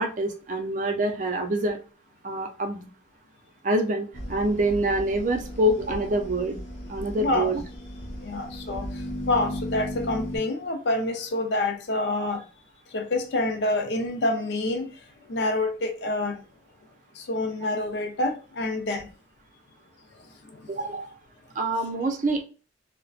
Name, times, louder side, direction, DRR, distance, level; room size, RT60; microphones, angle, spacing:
voice 1, 0.0-1.8 2.2-2.9 3.6-6.6 6.9-7.6 20.7-21.1 21.6-22.4, right 1 dB, 45° right, 0.4 m, -26 dB
sound 1, 4.1-10.4, left 1 dB, 55° left, 1.0 m, -36 dB
voice 2, 7.2-7.5 8.2-12.4 12.9-14.9 15.3-16.4 17.2-19.1 20.5-20.7, left 2 dB, 70° left, 0.5 m, -27 dB
2.5 x 2.1 x 2.3 m
head